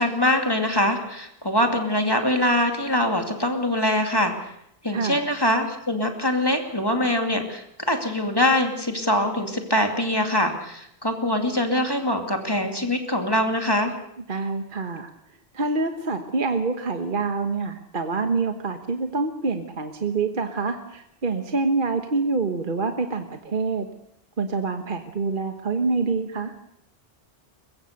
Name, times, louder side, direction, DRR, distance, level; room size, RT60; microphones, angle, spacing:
voice 1, 0.0-4.3 4.8-13.9, left 1 dB, 20° left, 4 dB, 2.5 m, -23 dB
voice 2, 4.9-5.2 14.3-15.1 15.5-23.9 24.4-26.5, right 3 dB, 55° right, 6 dB, 1.5 m, -26 dB
23.0 x 22.0 x 6.6 m, 0.75 s
omnidirectional pair, 1.0 m